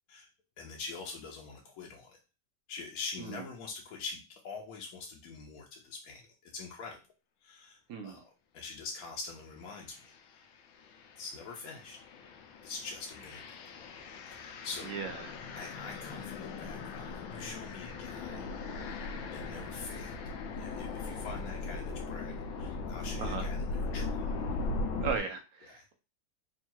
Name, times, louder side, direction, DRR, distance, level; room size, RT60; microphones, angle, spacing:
voice 1, 0.6-2.2 2.7-7.0 7.4-9.9 10.3-10.5 11.2-12.0 12.6-13.4 14.2-14.9 15.5-18.5 19.2-20.1 20.6-24.3 25.7-25.8, left 4 dB, 65° left, 0 dB, 1.0 m, -44 dB
voice 2, 7.9-8.2 14.9-15.4 23.2-23.5 25.0-25.9, right 5 dB, 70° right, 5 dB, 0.9 m, -37 dB
sound 1, 9.9-10.2 10.7-25.2, left 3 dB, 85° left, 1.4 m, -39 dB
3.6 x 2.4 x 4.3 m, 0.32 s
omnidirectional pair, 2.0 m